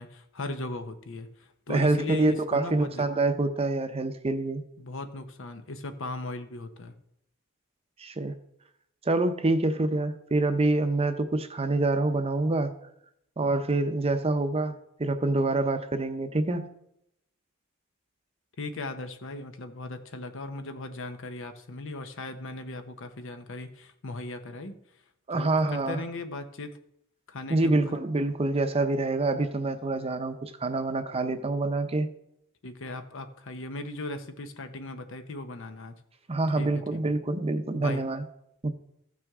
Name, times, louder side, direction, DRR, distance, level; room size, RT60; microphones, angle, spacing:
voice 1, 0.0-3.0 4.8-6.9 18.6-24.8 25.3-26.7 27.3-27.9 32.6-36.0 36.6-37.0 37.7-38.0, left 2 dB, 65° left, 8 dB, 0.9 m, -38 dB
voice 2, 1.7-4.6 8.0-8.3 9.1-12.7 13.4-14.7 15.0-16.7 25.3-26.0 27.5-32.1 36.3-38.2 38.6-38.7, right 2 dB, 30° right, 9 dB, 0.7 m, -26 dB
15.0 x 6.0 x 3.6 m, 0.77 s
head